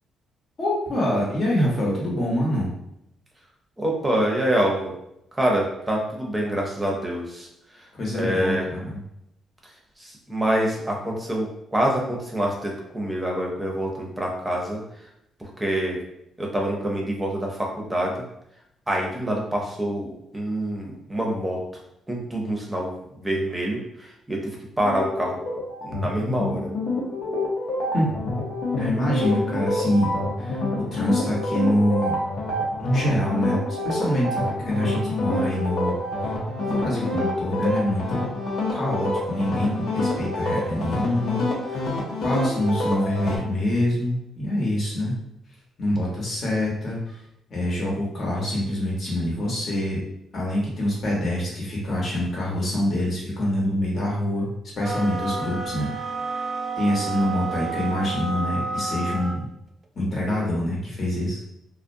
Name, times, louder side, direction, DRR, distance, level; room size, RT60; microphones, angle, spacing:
voice 1, 0.6-2.7 8.0-9.0 27.9-28.1 28.8-30.1 30.4-32.2 32.8-35.9 36.2-36.3 36.6-38.2 38.7-41.9 42.2-45.1 45.8-47.2 47.5-50.0 50.3-54.5 54.7-55.9 56.2-56.5 56.8-59.5 59.9-61.4, left 1 dB, 45° left, -4 dB, 1.0 m, -25 dB
voice 2, 3.8-4.9 5.3-7.5 8.1-8.7 10.0-14.8 15.4-16.0 16.4-18.2 18.9-21.6 22.1-22.9 23.2-24.4 24.8-25.4 25.8-26.7, right 1 dB, 15° right, -1 dB, 0.7 m, -26 dB
sound 1, 24.8-43.4, left 1 dB, 75° left, 0.8 m, -27 dB
sound 2, 54.8-59.4, right 4 dB, 30° right, 0.3 m, -30 dB
2.4 x 2.1 x 2.6 m, 0.81 s
cardioid pair, 90°, 0 cm